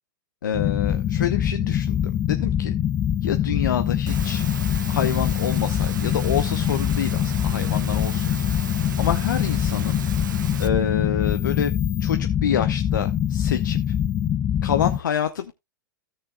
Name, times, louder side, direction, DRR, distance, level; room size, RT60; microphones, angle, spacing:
voice 1, 0.4-2.8 3.2-4.4 4.9-8.3 9.0-10.0 10.6-11.7 12.0-13.9 14.6-15.5, left 8 dB, 70° left, 0.8 m, -27 dB
sound 1, 0.5-15.0, left 10 dB, 25° left, 0.7 m, -24 dB
Engine / Mechanisms, 4.1-10.7, right 7 dB, 70° right, 1.2 m, -37 dB
16.5 x 6.6 x 2.3 m
figure-of-eight pair, 95°, 11 cm